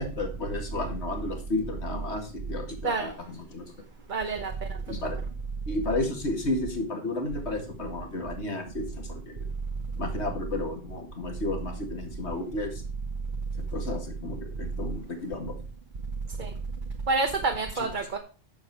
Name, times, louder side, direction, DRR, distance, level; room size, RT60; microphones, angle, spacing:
voice 1, 0.0-3.7 4.9-5.2 5.7-9.5 10.0-12.8 13.7-15.5 17.8-17.9, left 2 dB, 75° left, 2.4 m, -32 dB
voice 2, 4.1-4.5 16.4-16.5 17.1-18.2, right 3 dB, 45° right, 1.2 m, -27 dB
10.5 x 7.2 x 4.7 m
omnidirectional pair, 1.2 m